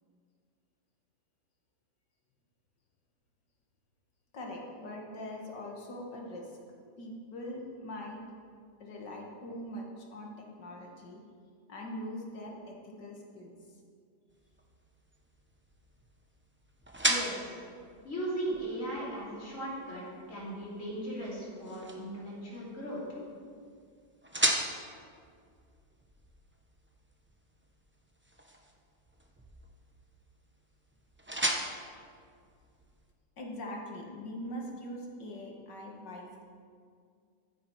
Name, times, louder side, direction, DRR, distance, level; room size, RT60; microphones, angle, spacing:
voice 1, 4.3-6.6 7.0-8.2 8.8-11.2 11.7-13.5 33.4-36.4, left 1 dB, 90° left, 0 dB, 2.3 m, -42 dB
sound 1, 14.3-33.1, right 1 dB, 10° right, 0.6 m, -39 dB
voice 2, 17.0-17.6 18.0-23.0, right 1 dB, 45° left, -6 dB, 3.9 m, -37 dB
14.5 x 8.7 x 4.7 m, 2.2 s
omnidirectional pair, 1.8 m